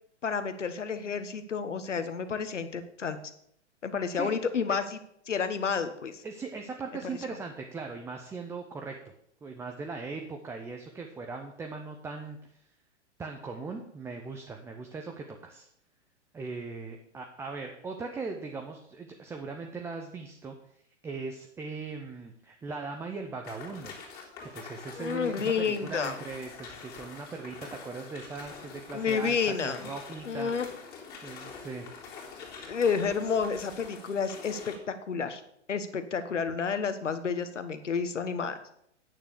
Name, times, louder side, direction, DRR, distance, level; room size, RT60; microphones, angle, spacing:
voice 1, 0.2-3.2 3.8-5.0 5.3-6.2 7.0-7.2 25.0-26.2 28.9-29.9 30.3-30.7 32.6-35.4 35.7-38.6, left 6 dB, 75° left, 10 dB, 1.3 m, -30 dB
voice 2, 6.2-9.0 9.4-12.6 13.2-15.7 16.3-23.9 24.4-30.5 31.2-31.9, right 4 dB, 5° right, 3 dB, 0.6 m, -39 dB
sound 1, 23.4-34.8, left 5 dB, 25° left, 2.9 m, -45 dB
9.1 x 6.9 x 6.6 m, 0.71 s
figure-of-eight pair, 115°, 36 cm